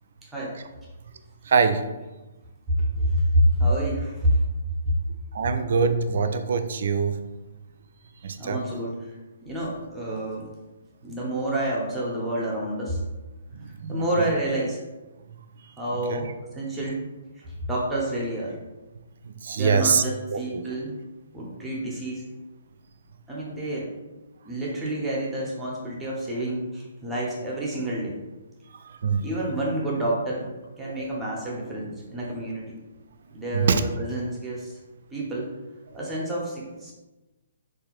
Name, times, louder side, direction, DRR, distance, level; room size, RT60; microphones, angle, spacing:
voice 1, 0.2-0.6 2.7-4.3 4.8-4.9 8.4-9.1 9.4-10.5 11.0-13.0 13.9-14.8 15.8-17.1 17.4-18.6 19.6-21.0 21.3-22.3 23.3-23.9 24.4-28.2 29.2-32.8 33.3-34.8 35.1-35.5 35.9-36.9, right 1 dB, 10° right, -4 dB, 0.8 m, -28 dB
voice 2, 1.5-1.8 5.3-7.2 8.2-8.6 13.5-14.3 16.1-16.3 19.2-20.0 20.3-20.6 28.8-29.3 31.0-31.1 33.5-33.8, right 5 dB, 55° right, 8 dB, 0.3 m, -24 dB
3.7 x 2.5 x 3.0 m, 1.1 s
figure-of-eight pair, 130°, 0 cm